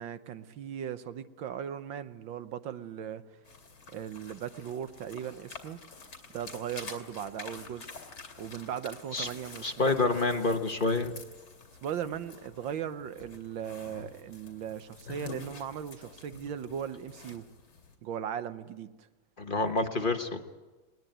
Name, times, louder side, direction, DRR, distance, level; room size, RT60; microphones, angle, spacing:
voice 1, 0.0-3.4 3.9-5.8 6.3-7.9 8.4-9.9 10.2-10.7 11.8-17.4 18.0-19.1 19.6-19.9, right 9 dB, 75° right, 11 dB, 1.6 m, -38 dB
sound 1, 3.4-18.0, left 4 dB, 55° left, 3.3 m, -48 dB
voice 2, 9.6-11.1 19.4-20.5, left 3 dB, 30° left, 6 dB, 1.1 m, -28 dB
20.0 x 20.0 x 9.1 m, 1.2 s
omnidirectional pair, 2.1 m